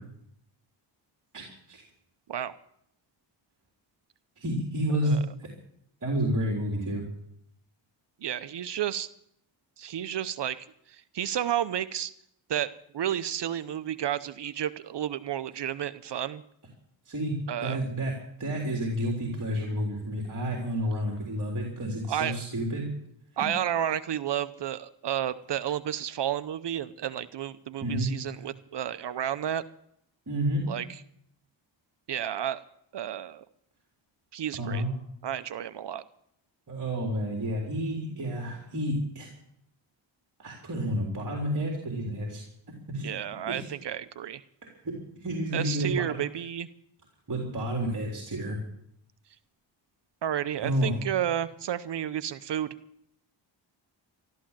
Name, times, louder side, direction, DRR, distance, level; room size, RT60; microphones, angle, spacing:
voice 1, 1.3-1.8 4.4-5.5 6.0-7.0 17.1-17.3 17.6-18.1 18.4-22.9 27.8-28.1 30.3-30.7 34.5-34.9 36.7-39.3 40.4-42.4 42.9-43.1 43.5-43.7 44.8-44.9 45.2-46.0 47.3-48.6 50.6-51.0, equal, 40° right, -1 dB, 3.9 m, -30 dB
voice 2, 8.2-9.1 9.8-12.1 12.5-16.4 17.5-17.8 22.1-22.4 23.4-29.6 30.7-31.0 32.1-32.6 32.9-33.4 34.3-34.8 35.2-36.0 43.0-44.4 45.5-46.7 50.2-52.7, right 10 dB, 60° right, 13 dB, 0.8 m, -31 dB
14.0 x 13.0 x 7.5 m, 0.73 s
cardioid pair, 80°, 48 cm